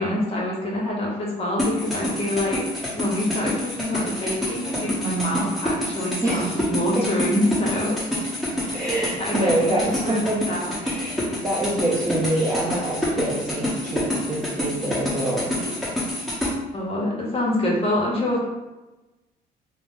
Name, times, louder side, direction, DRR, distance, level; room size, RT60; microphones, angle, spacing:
voice 1, 0.0-2.6 2.9-8.0 8.7-8.8 9.2-10.2 10.5-10.7 16.7-18.4, left 1 dB, 35° left, -3 dB, 0.9 m, -25 dB
sound 1, 1.6-16.5, left 1 dB, ahead, 1.0 m, -27 dB
voice 2, 6.2-6.5 7.0-7.3 7.9-8.0 8.7-10.5 10.8-15.5, right 1 dB, 20° right, -6 dB, 0.6 m, -26 dB
2.8 x 2.0 x 3.6 m, 1.1 s
cardioid pair, 110°, 17 cm